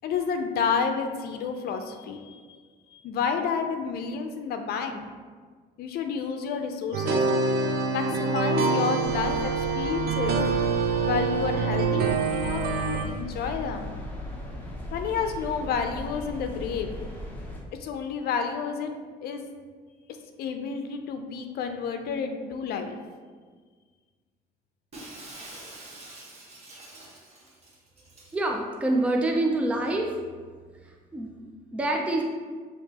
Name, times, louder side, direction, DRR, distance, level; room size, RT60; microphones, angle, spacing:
voice 1, 0.0-2.4 2.9-5.1 5.8-7.4 7.9-10.4 11.0-13.9 14.9-16.9 17.8-18.9 19.2-19.5 20.4-23.0, left 6 dB, 65° left, 6 dB, 0.5 m, -30 dB
sound 1, 6.9-13.1, right 4 dB, 65° right, 0.5 m, -25 dB
sound 2, 9.0-17.6, left 1 dB, 10° left, 0.9 m, -38 dB
Shatter, 24.9-28.4, right 2 dB, 40° right, 1.2 m, -45 dB
voice 2, 28.3-30.1 31.1-31.3 31.7-32.2, right 2 dB, 5° right, 1 dB, 0.4 m, -25 dB
6.4 x 2.9 x 2.8 m, 1.6 s
cardioid pair, 110°, 17 cm